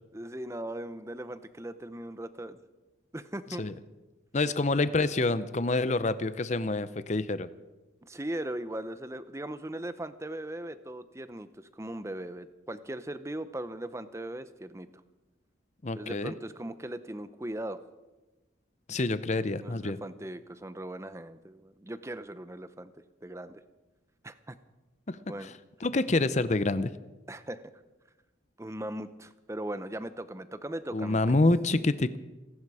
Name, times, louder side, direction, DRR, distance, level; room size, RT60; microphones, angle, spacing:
voice 1, 0.1-2.6 3.1-3.6 8.1-14.9 16.0-17.8 19.6-22.9 23.2-23.6 24.2-24.6 25.3-25.5 27.3-27.6 28.6-31.3, right 1 dB, 15° right, 12 dB, 0.7 m, -39 dB
voice 2, 4.3-7.5 15.8-16.3 18.9-20.0 25.1-25.5 25.8-26.9 30.9-32.2, left 2 dB, 35° left, 14 dB, 0.6 m, -27 dB
27.0 x 11.0 x 4.9 m, 1.1 s
head